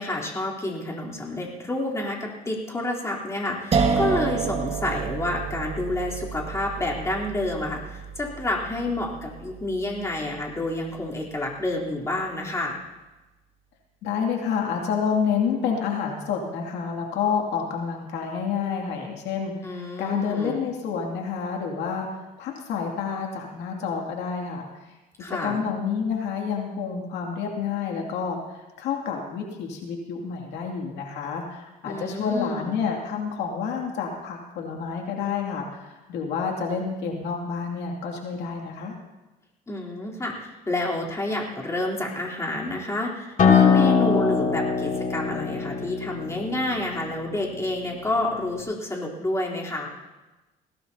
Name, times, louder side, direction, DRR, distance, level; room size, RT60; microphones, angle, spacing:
voice 1, 0.0-12.8 19.6-20.6 25.2-25.7 31.8-32.8 39.7-49.9, left 1 dB, 15° left, -3 dB, 3.6 m, -29 dB
sound 1, 3.7-10.7, right 5 dB, 35° right, 1.6 m, -29 dB
voice 2, 14.0-19.5 20.0-24.7 25.3-28.4 28.8-35.8 36.1-38.9, left 6 dB, 90° left, 0 dB, 2.5 m, -29 dB
Acoustic guitar, 43.4-48.6, left 6 dB, 50° left, 2.1 m, -23 dB
21.0 x 17.0 x 2.8 m, 1.1 s
cardioid pair, 110°, 17 cm